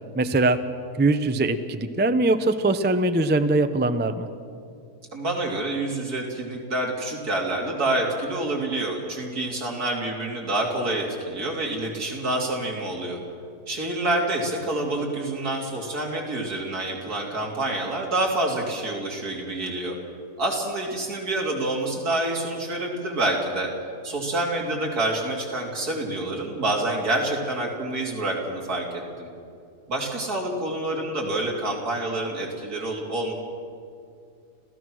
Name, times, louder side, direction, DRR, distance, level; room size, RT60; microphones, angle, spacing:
voice 1, 0.1-0.6 1.0-4.3, right 2 dB, 15° right, 9 dB, 0.3 m, -22 dB
voice 2, 5.1-13.2 13.7-20.0 20.4-23.7 24.0-29.3 29.9-33.3, right 2 dB, 70° right, -1 dB, 3.5 m, -27 dB
26.5 x 16.0 x 6.3 m, 2.4 s
omnidirectional pair, 1.7 m